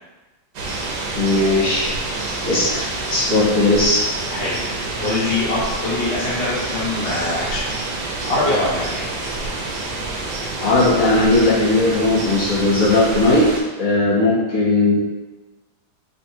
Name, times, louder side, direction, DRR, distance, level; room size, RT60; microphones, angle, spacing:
sound 1, 0.5-13.6, right 2 dB, 70° right, 1.1 m, -28 dB
voice 1, 1.1-1.9 2.4-4.0 10.6-13.4 13.8-15.0, left 2 dB, 85° left, -8 dB, 2.5 m, -17 dB
voice 2, 4.3-7.7 8.2-9.3 14.0-14.1, left 2 dB, 40° left, -7 dB, 1.2 m, -24 dB
4.7 x 3.2 x 2.9 m, 1.2 s
omnidirectional pair, 2.3 m